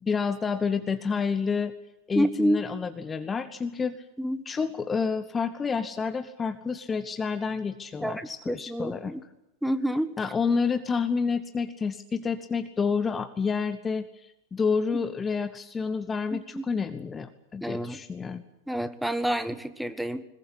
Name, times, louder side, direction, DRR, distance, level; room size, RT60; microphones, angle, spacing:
voice 1, 0.0-1.7 2.1-4.0 4.4-9.1 10.2-18.4, left 5 dB, 15° left, 11 dB, 1.1 m, -29 dB
voice 2, 2.1-2.6 4.2-4.4 8.0-9.2 9.6-10.1 16.3-16.6 17.6-18.0 18.7-20.2, equal, ahead, 11 dB, 1.5 m, -28 dB
21.5 x 21.0 x 8.5 m, 0.88 s
figure-of-eight pair, 90°, 0 cm